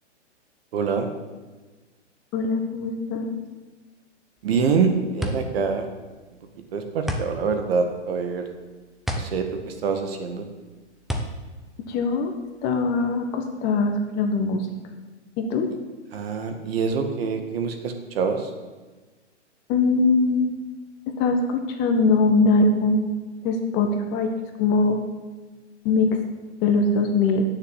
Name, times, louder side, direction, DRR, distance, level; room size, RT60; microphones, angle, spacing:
voice 1, 0.7-1.1 4.4-5.9 6.7-8.5 9.1-10.5 16.1-18.5, right 5 dB, 55° right, 6 dB, 1.8 m, -25 dB
voice 2, 2.3-3.3 11.9-12.3 12.6-14.7 15.4-15.7 19.7-20.6 21.2-23.1 23.4-24.3 24.6-25.0 25.8-26.2 26.6-27.4, left 3 dB, 30° left, 5 dB, 1.3 m, -21 dB
sound 1, 4.4-12.7, equal, ahead, 0.6 m, -33 dB
9.4 x 6.8 x 8.2 m, 1.3 s
hypercardioid pair, 135°, 36 cm